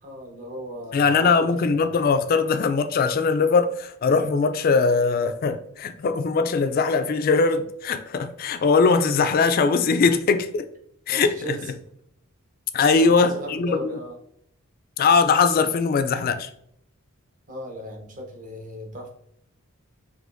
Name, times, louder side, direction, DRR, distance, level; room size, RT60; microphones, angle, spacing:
voice 1, 0.0-1.8 11.1-11.7 13.0-14.2 17.5-19.1, equal, 35° right, 0.8 m, -36 dB
voice 2, 0.9-10.7 11.1-11.6 12.7-13.8 15.0-16.5, left 4 dB, 45° left, 0.3 m, -21 dB
5.0 x 2.9 x 2.5 m
head